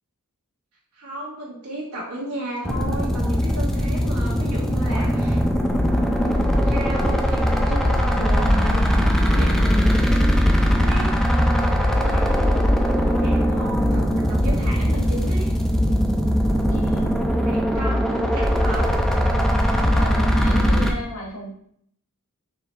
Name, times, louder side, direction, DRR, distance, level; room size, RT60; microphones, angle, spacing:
voice 1, 0.9-5.4 5.9-9.5 10.6-11.1 11.8-12.6 12.9-15.5 17.4-18.9, right 1 dB, 90° right, -6 dB, 1.2 m, -33 dB
sound 1, 2.6-20.9, equal, ahead, 0.3 m, -21 dB
sound 2, 4.7-20.7, equal, 50° right, 1.2 m, -25 dB
voice 2, 12.1-12.5 16.7-17.5 19.7-21.5, left 1 dB, 65° left, -1 dB, 1.1 m, -35 dB
4.6 x 3.1 x 3.2 m, 0.65 s
head